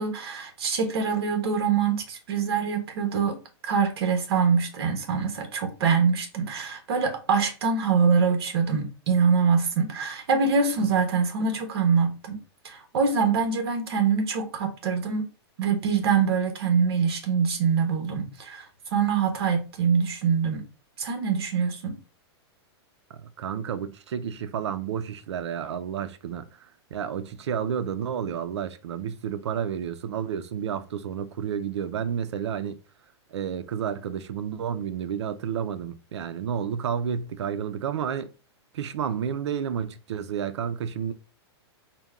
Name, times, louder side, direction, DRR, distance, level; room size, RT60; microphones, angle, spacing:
voice 1, 0.0-3.4 3.6-12.4 12.6-15.3 15.6-18.6 18.9-20.6 21.0-22.0, right 5 dB, 65° right, 1.2 m, -24 dB
voice 2, 23.1-26.5 26.9-32.8 33.3-38.3 38.7-41.1, right 8 dB, 90° right, 0.5 m, -31 dB
4.1 x 2.2 x 3.6 m
supercardioid pair, 160°, 14 cm